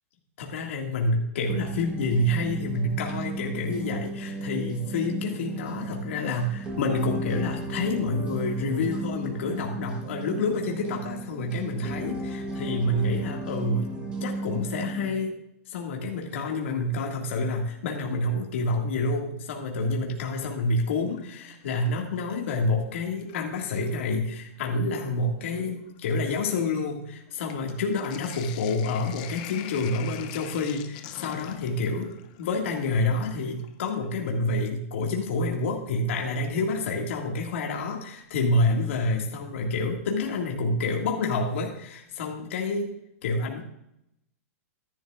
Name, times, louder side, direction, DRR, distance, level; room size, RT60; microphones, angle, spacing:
voice 1, 0.4-13.9 14.2-15.3 15.7-32.1 32.4-42.9 43.2-43.6, left 2 dB, 55° left, 0 dB, 2.0 m, -28 dB
sound 1, 1.5-15.1, right 2 dB, 15° right, 1.2 m, -35 dB
Sink (filling or washing), 20.7-22.7 23.1-23.9 24.7-24.8 25.1-34.2 35.9-36.0 37.9-38.3 38.6-38.7 39.0-39.1, left 11 dB, 30° left, 0.6 m, -45 dB
14.0 x 11.0 x 2.5 m, 0.80 s
supercardioid pair, 175°, 8 cm